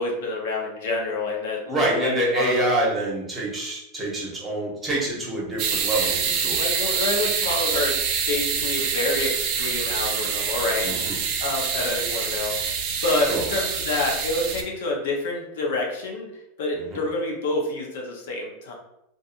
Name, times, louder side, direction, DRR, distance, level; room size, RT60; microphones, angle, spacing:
voice 1, 0.0-2.7 6.6-8.0 8.3-10.9 11.4-12.8 13.0-16.3 16.6-18.7, left 2 dB, 75° left, 0 dB, 0.7 m, -27 dB
voice 2, 1.7-6.6 10.8-11.2 13.2-13.4 16.8-17.0, right 1 dB, 15° right, -4 dB, 0.9 m, -26 dB
sound 1, 5.6-14.6, right 6 dB, 45° right, 0.4 m, -26 dB
2.6 x 2.4 x 2.5 m, 0.80 s
supercardioid pair, 145°, 0 cm